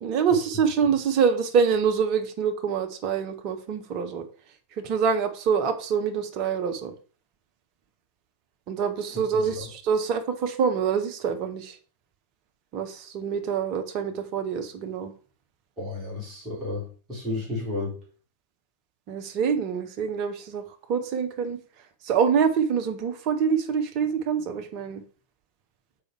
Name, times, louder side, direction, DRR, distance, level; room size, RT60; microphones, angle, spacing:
voice 1, 0.0-4.3 4.8-6.9 8.7-11.8 12.7-15.1 19.1-21.6 22.0-25.0, right 6 dB, 40° right, 7 dB, 1.1 m, -25 dB
voice 2, 15.8-17.9, left 2 dB, 15° right, -7 dB, 4.5 m, -32 dB
6.9 x 5.3 x 4.6 m, 0.38 s
figure-of-eight pair, 90°, 0 cm